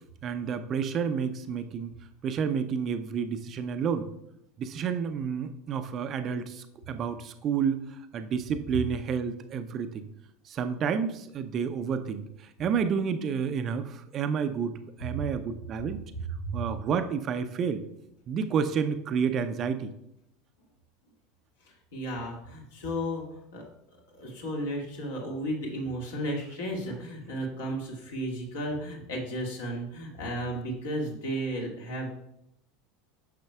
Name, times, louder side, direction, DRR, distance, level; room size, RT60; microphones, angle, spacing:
voice 1, 0.2-1.9 2.2-4.1 4.6-10.1 10.5-16.0 16.5-17.8 18.3-19.9, right 6 dB, 35° right, 9 dB, 0.5 m, -30 dB
voice 2, 21.7-23.6 24.2-32.1, right 1 dB, 65° left, -1 dB, 2.0 m, -34 dB
9.4 x 6.6 x 2.3 m, 0.79 s
figure-of-eight pair, 75°, 0 cm